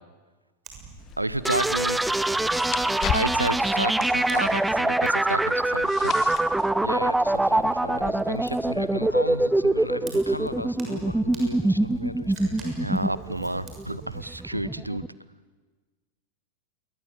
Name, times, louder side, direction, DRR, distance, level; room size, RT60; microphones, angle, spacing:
Fire, 0.6-14.4, right 5 dB, 30° right, 6.8 m, -49 dB
sound 1, 1.0-8.1, left 9 dB, 30° left, 1.5 m, -37 dB
voice 1, 1.2-2.0 3.1-6.3 12.7-15.0, right 1 dB, 85° right, 18 dB, 0.9 m, -30 dB
sound 2, 1.4-15.1, right 2 dB, 5° right, 0.7 m, -24 dB
voice 2, 6.8-12.9, left 1 dB, 85° left, 15 dB, 1.1 m, -36 dB
28.0 x 21.5 x 8.2 m, 1.3 s
figure-of-eight pair, 90°, 0 cm